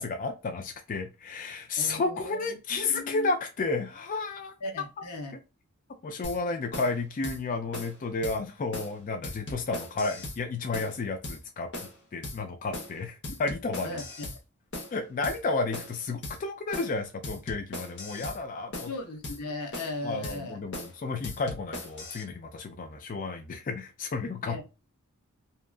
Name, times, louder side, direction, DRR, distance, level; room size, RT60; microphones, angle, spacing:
voice 1, 0.0-4.5 6.0-11.7 12.1-14.0 14.9-18.9 20.0-24.6, left 3 dB, 35° left, 0.3 m, -32 dB
voice 2, 1.8-3.3 4.6-5.3 13.8-14.3 18.8-20.6 24.5-24.6, left 2 dB, 85° left, 0.8 m, -38 dB
sound 1, 6.2-6.4 6.7-6.9 7.2-7.4 7.7-8.0 8.2-8.4 8.7-8.9 9.2-10.4 10.7-11.0 11.2-11.4 11.7-12.0 12.2-12.4 12.7-13.0 13.2-14.4 14.7-14.9 15.2-15.4 15.7-16.0 16.2-16.4 16.7-17.0 17.2-18.4 18.7-18.9 19.2-19.4 19.7-20.0 20.2-20.4 20.7-20.9 21.2-22.2, left 1 dB, 50° left, 0.9 m, -38 dB
2.8 x 2.3 x 2.3 m
head